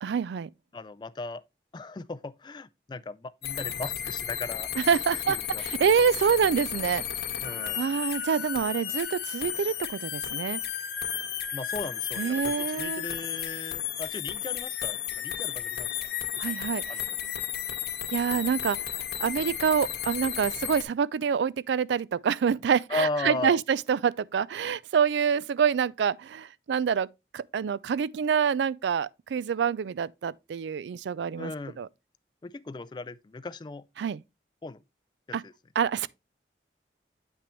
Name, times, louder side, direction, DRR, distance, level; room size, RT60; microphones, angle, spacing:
voice 1, 0.0-0.5 4.8-7.0 7.7-10.6 12.2-13.1 16.4-16.8 18.1-18.8 19.2-27.1 27.3-31.5 31.8-31.9 34.0-34.2 35.3-35.4 35.8-36.1, right 7 dB, 80° right, 0.3 m, -26 dB
voice 2, 0.7-1.4 1.7-4.7 5.1-5.6 7.4-7.8 11.5-16.1 16.9-17.3 22.9-23.6 31.4-31.8 32.4-33.8 34.6-34.8 35.3-35.5, left 3 dB, 25° left, 0.3 m, -37 dB
sound 1, 3.4-20.8, left 10 dB, 65° left, 0.9 m, -33 dB
8.5 x 5.9 x 3.1 m
head